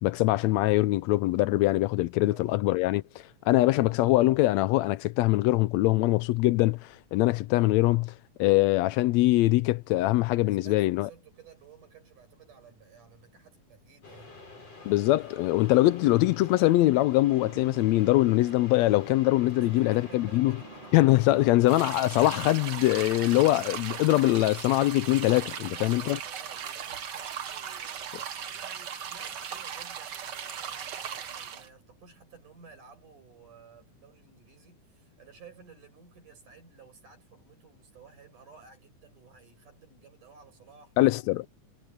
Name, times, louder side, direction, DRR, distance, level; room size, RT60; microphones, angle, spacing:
voice 1, 0.0-3.0 3.5-8.1 8.4-11.1 14.8-20.5 20.9-26.2 41.0-41.5, left 17 dB, 80° left, 1.6 m, -23 dB
voice 2, 2.2-2.6 10.4-14.3 19.6-20.9 21.3-21.8 25.6-41.1, right 5 dB, 80° right, 8.5 m, -54 dB
sound 1, 14.0-24.3, left 3 dB, 50° left, 8.2 m, -49 dB
Drum Roll and Cymbal Crash - ear-rape, 17.3-23.8, right 5 dB, 40° right, 3.2 m, -49 dB
sound 2, 21.7-31.7, right 8 dB, 60° right, 1.1 m, -38 dB
omnidirectional pair, 3.5 m